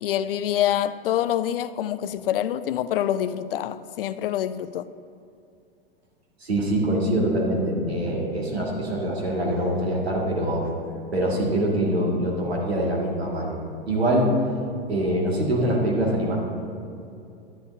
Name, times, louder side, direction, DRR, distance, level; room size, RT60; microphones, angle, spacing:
voice 1, 0.0-4.9, left 11 dB, 65° left, 0.4 m, -26 dB
voice 2, 6.4-10.7 11.1-13.6 13.8-14.3 14.9-16.4, right 1 dB, 80° right, 2.0 m, -24 dB
11.0 x 10.0 x 2.7 m
figure-of-eight pair, 95°, 31 cm